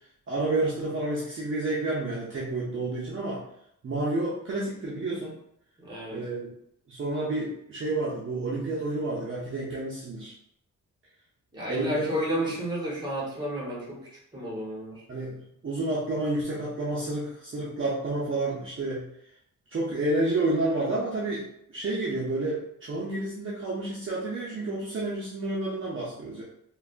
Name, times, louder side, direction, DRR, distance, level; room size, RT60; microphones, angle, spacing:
voice 1, 0.3-3.4 3.8-5.4 6.1-6.5 6.9-10.3 11.7-12.2 15.1-19.1 19.7-21.4 21.7-26.4, right 2 dB, 40° right, -7 dB, 0.6 m, -30 dB
voice 2, 5.8-6.2 11.5-14.0 14.3-15.0, right 1 dB, 15° right, -5 dB, 1.1 m, -31 dB
3.3 x 2.3 x 2.4 m, 0.74 s
wide cardioid pair, 140°, 32 cm